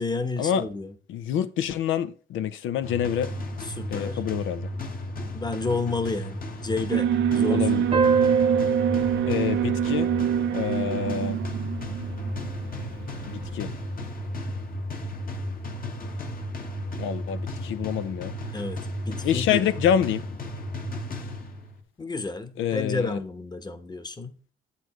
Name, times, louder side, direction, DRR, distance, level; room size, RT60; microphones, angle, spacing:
voice 1, 0.0-0.9 3.6-4.2 5.3-8.1 18.5-18.8 19.1-19.6 22.0-24.3, left 3 dB, 20° left, 1.1 m, -31 dB
voice 2, 1.1-3.3 3.9-4.7 7.4-7.8 9.3-10.1 10.5-11.4 13.3-13.7 17.0-18.3 19.2-20.2 22.6-23.2, left 9 dB, 85° left, 0.7 m, -27 dB
sound 1, 2.8-21.8, left 1 dB, 45° left, 1.3 m, -34 dB
Alarm, 6.9-14.0, right 9 dB, 65° right, 0.5 m, -26 dB
sound 2, 7.9-11.1, right 5 dB, 30° right, 0.8 m, -26 dB
8.0 x 7.0 x 3.1 m
cardioid pair, 90°, 20 cm